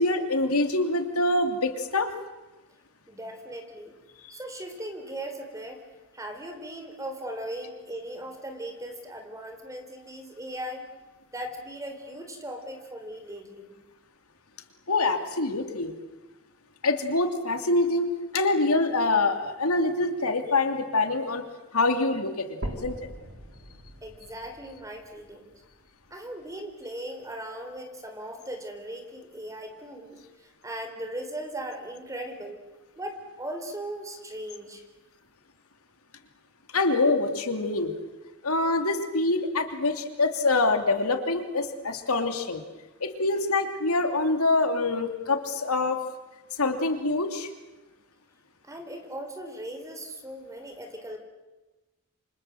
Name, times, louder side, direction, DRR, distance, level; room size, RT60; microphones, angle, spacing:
voice 1, 0.0-2.1 14.9-15.9 16.8-18.1 18.3-21.4 21.7-23.0 36.7-37.9 38.4-42.6 43.0-46.0 46.6-47.5, left 2 dB, 80° left, 6 dB, 2.8 m, -25 dB
voice 2, 3.1-4.0 4.3-5.8 6.1-10.9 11.3-13.7 24.0-25.5 26.1-32.6 33.0-34.8 48.6-51.2, right 1 dB, 15° right, 5 dB, 4.0 m, -38 dB
sound 1, 22.6-26.6 27.2-27.3 27.8-27.9 28.3-28.4 29.2-29.3, right 1 dB, 60° right, 3.9 m, -41 dB
28.0 x 26.0 x 7.8 m, 1.1 s
head